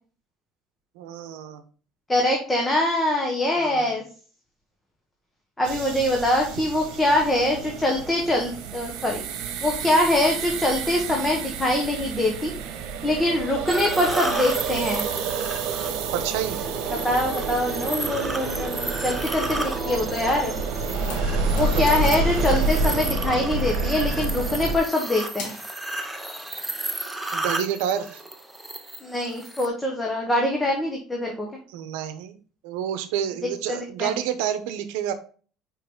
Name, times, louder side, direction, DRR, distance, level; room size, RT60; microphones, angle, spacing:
voice 1, 1.0-1.6 3.6-3.9 16.1-16.6 27.3-28.2 31.7-32.4 32.6-35.1, right 10 dB, 90° right, 10 dB, 0.8 m, -29 dB
voice 2, 2.1-4.0 5.6-9.2 9.6-12.5 13.0-15.0 16.9-20.5 21.5-25.5 29.0-31.5 33.7-34.1, left 1 dB, 10° left, -1 dB, 1.2 m, -24 dB
sound 1, 5.6-24.8, right 4 dB, 70° right, 1.2 m, -29 dB
sound 2, 13.7-29.7, right 1 dB, 5° right, 0.8 m, -34 dB
sound 3, 20.9-23.4 25.4-25.8, left 4 dB, 70° left, 2.3 m, -39 dB
5.7 x 4.8 x 3.7 m, 0.39 s
cardioid pair, 145°, 0 cm